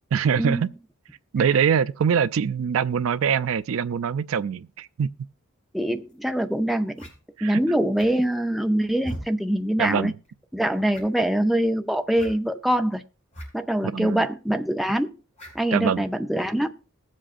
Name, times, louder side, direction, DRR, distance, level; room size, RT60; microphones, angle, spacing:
voice 1, 0.1-0.7 1.3-5.1 7.4-7.6 9.8-10.1 13.9-14.3 15.7-16.1, right 7 dB, 70° right, 0.4 m, -23 dB
voice 2, 5.7-7.0 7.4-10.1 10.5-13.0 13.5-15.1 15.5-16.8, right 1 dB, ahead, 0.5 m, -24 dB
sound 1, 6.1-6.2 6.9-7.1 7.9-8.3 9.0-9.3 9.8-10.0 10.2-10.3 10.9-11.2 12.2-12.3 13.3-13.5 13.7-13.8 15.3-15.6, right 1 dB, 35° left, 6.7 m, -38 dB
20.5 x 7.5 x 2.5 m
head